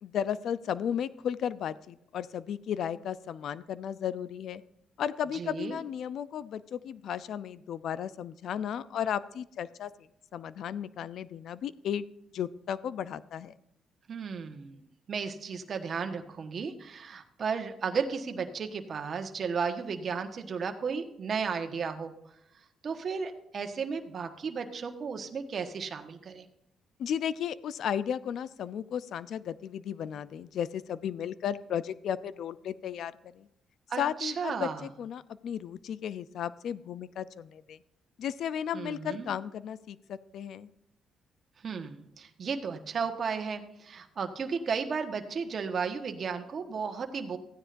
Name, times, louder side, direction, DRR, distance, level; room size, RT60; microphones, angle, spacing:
voice 1, 0.0-4.6 5.0-9.9 10.3-12.1 12.3-13.5 27.0-33.5 34.0-37.8 38.2-40.7, left 9 dB, 70° left, 16 dB, 0.5 m, -34 dB
voice 2, 5.3-5.8 14.1-14.8 15.1-22.1 22.8-26.5 33.9-34.8 38.7-39.3 41.6-47.4, right 5 dB, 50° right, 5 dB, 1.4 m, -34 dB
15.0 x 9.9 x 2.6 m, 0.78 s
cardioid pair, 90°, 0 cm